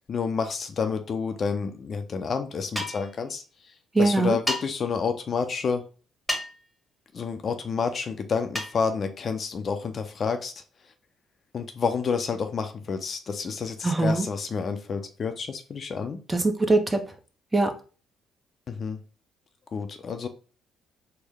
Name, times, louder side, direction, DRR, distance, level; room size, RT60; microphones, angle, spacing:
voice 1, 0.1-3.4 4.0-5.8 7.1-10.5 11.5-16.2 18.7-19.0 19.7-20.3, left 5 dB, 50° left, 7 dB, 0.5 m, -29 dB
sound 1, 2.8-3.1 4.5-4.6 6.3-6.6 8.5-8.8, left 1 dB, 5° left, 1.2 m, -29 dB
voice 2, 3.9-4.4 13.8-14.3 16.3-17.0 17.5-17.7, right 2 dB, 20° right, 6 dB, 0.7 m, -22 dB
4.4 x 2.1 x 3.5 m, 0.36 s
hypercardioid pair, 50°, 0 cm